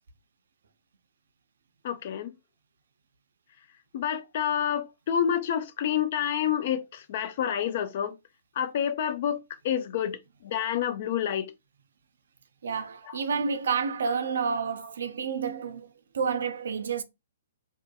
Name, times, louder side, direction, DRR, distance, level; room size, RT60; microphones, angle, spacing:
voice 1, 1.8-2.3 3.9-8.1 8.6-11.5 13.1-13.2, left 9 dB, 50° left, 0.4 m, -28 dB
voice 2, 12.6-15.9 16.1-17.0, right 6 dB, 65° right, 0.4 m, -29 dB
2.6 x 2.4 x 2.2 m
figure-of-eight pair, 125°, 0 cm